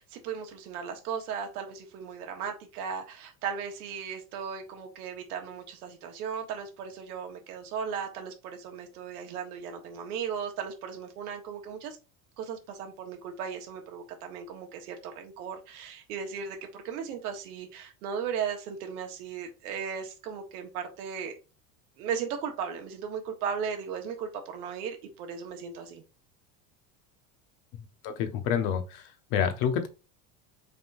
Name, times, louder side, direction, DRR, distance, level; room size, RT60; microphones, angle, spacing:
voice 1, 0.0-12.0 12.4-21.4 22.0-26.0, right 7 dB, 85° right, 1.4 m, -36 dB
voice 2, 27.7-29.0 29.3-29.9, left 8 dB, 60° left, 1.0 m, -28 dB
4.9 x 3.7 x 2.6 m
supercardioid pair, 115°, 44 cm